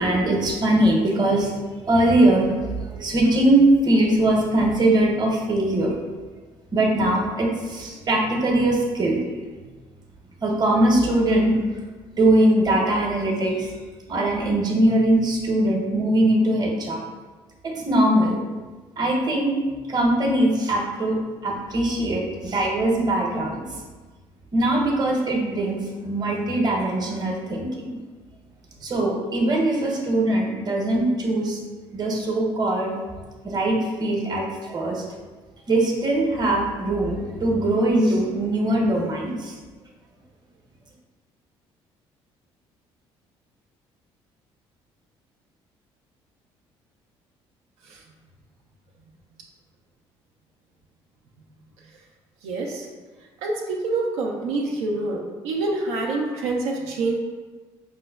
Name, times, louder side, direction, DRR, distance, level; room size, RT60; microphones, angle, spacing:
voice 1, 0.0-1.5 1.9-6.0 6.7-9.2 10.4-11.8 12.2-13.7 14.1-17.0 17.6-18.4 19.0-19.6 19.9-21.2 21.4-23.8 24.5-27.9 28.8-31.6 31.9-32.9 33.4-35.0 35.7-39.6, right 1 dB, 35° right, -1 dB, 0.8 m, -21 dB
voice 2, 52.4-52.9 53.4-57.2, right 3 dB, 90° right, -1 dB, 0.4 m, -26 dB
5.0 x 2.1 x 2.2 m, 1.3 s
supercardioid pair, 75°, 12 cm